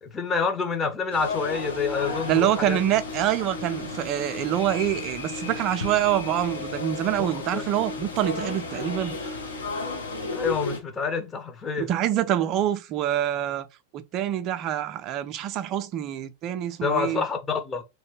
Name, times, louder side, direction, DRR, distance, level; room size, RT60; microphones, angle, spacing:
voice 1, 0.0-2.8 7.2-7.7 10.3-11.9 16.8-17.8, left 5 dB, 20° left, 0.7 m, -28 dB
sound 1, 1.1-10.8, left 3 dB, 75° left, 0.9 m, -33 dB
voice 2, 2.3-9.3 11.8-13.7 13.9-17.2, right 12 dB, 35° right, 0.4 m, -26 dB
2.9 x 2.2 x 3.1 m
figure-of-eight pair, 90°, 0 cm